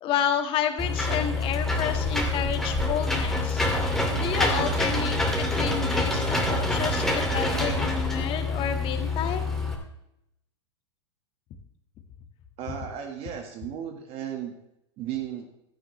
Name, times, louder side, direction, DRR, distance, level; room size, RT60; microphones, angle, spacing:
voice 1, 0.0-3.6 4.1-9.4, left 8 dB, 35° left, 7 dB, 1.8 m, -30 dB
Engine / Mechanisms, 0.8-9.7, left 2 dB, ahead, 2.5 m, -26 dB
voice 2, 12.6-14.5 15.0-15.5, right 9 dB, 40° right, 4 dB, 1.7 m, -35 dB
16.0 x 12.0 x 3.2 m, 0.81 s
supercardioid pair, 130°, 15 cm